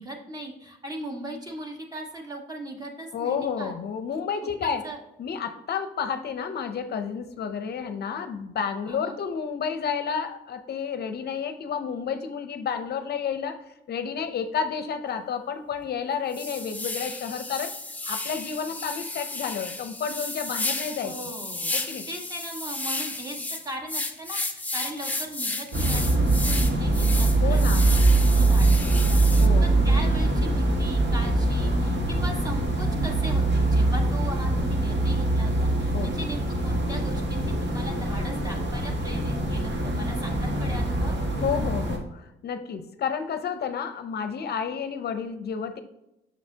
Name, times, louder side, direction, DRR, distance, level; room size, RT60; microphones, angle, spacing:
voice 1, 0.0-3.7 4.6-5.0 8.9-9.1 21.0-21.7 22.1-27.6 27.9-41.2, right 1 dB, 20° right, 1 dB, 1.5 m, -38 dB
voice 2, 3.1-4.8 5.2-13.6 13.9-17.7 18.1-21.1 21.7-22.1 27.4-27.9 29.4-29.7 35.9-36.1 41.4-45.8, left 6 dB, 55° left, 8 dB, 0.6 m, -31 dB
sound 1, 15.1-15.2 15.7-15.8 16.3-29.5, left 2 dB, 10° left, 0.8 m, -33 dB
sound 2, 25.7-42.0, right 2 dB, 60° right, 1.7 m, -23 dB
6.9 x 6.3 x 2.8 m, 0.88 s
cardioid pair, 90°, 20 cm